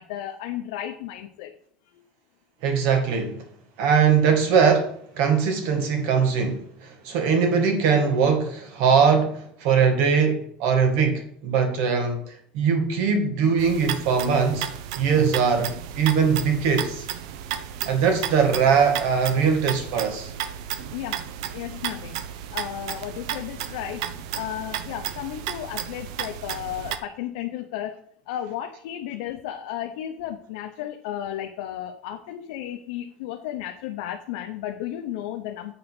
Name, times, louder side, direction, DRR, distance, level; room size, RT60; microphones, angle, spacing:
voice 1, 0.0-1.5 1.9-2.0 20.9-21.2 21.5-22.2 22.5-27.9 28.3-35.7, left 11 dB, 80° left, 3 dB, 0.8 m, -34 dB
voice 2, 2.6-3.4 3.8-14.7 15.0-17.1 17.9-20.3, right 6 dB, 55° right, 6 dB, 1.7 m, -21 dB
sound 1, 13.6-27.0, right 10 dB, 75° right, 0.7 m, -33 dB
8.3 x 3.9 x 6.1 m, 0.65 s
cardioid pair, 175°, 3 cm